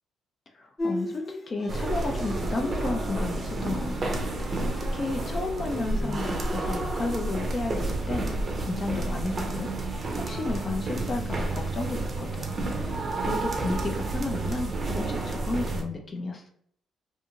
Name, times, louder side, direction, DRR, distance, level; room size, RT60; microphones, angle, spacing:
voice 1, 0.5-8.3 8.6-16.5, left 3 dB, 40° left, 2 dB, 0.4 m, -33 dB
Bowed string instrument, 0.8-6.2, left 1 dB, 15° left, 0.8 m, -39 dB
sound 1, 1.7-15.8, right 2 dB, 40° right, 0.5 m, -30 dB
2.6 x 2.5 x 2.8 m, 0.66 s
cardioid pair, 110°, 0 cm